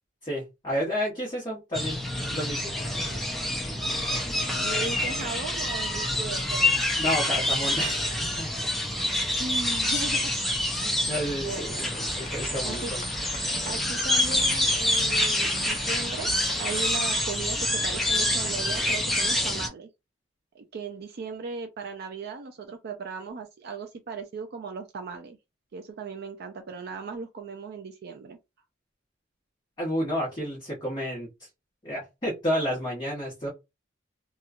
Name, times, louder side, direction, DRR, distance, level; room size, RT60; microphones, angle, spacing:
voice 1, 0.2-2.0 2.3-2.7 7.0-8.7 10.8-13.0 29.8-31.3 31.8-33.5, equal, 25° left, 1.1 m, -31 dB
sound 1, 1.7-19.7, left 1 dB, ahead, 0.5 m, -27 dB
voice 2, 4.6-6.9 9.4-10.3 10.9-11.9 12.6-12.9 13.7-16.3 16.6-19.9 20.5-25.4 25.7-28.4, right 4 dB, 55° right, 0.4 m, -37 dB
sound 2, 11.2-16.9, left 4 dB, 50° left, 0.6 m, -43 dB
2.9 x 2.3 x 2.4 m
head